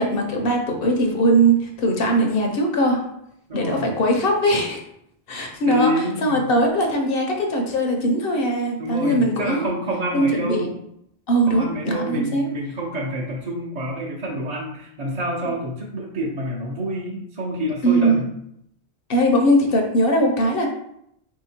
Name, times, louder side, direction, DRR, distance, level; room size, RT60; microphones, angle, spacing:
voice 1, 0.0-3.0 3.5-4.8 5.3-9.6 10.1-10.7 11.3-12.5 17.8-18.3 19.1-20.7, right 1 dB, 60° left, 2 dB, 0.9 m, -20 dB
voice 2, 3.5-3.9 5.7-6.5 8.8-10.7 11.5-18.3, equal, 40° right, -6 dB, 0.7 m, -27 dB
3.2 x 2.8 x 4.3 m, 0.75 s
omnidirectional pair, 1.1 m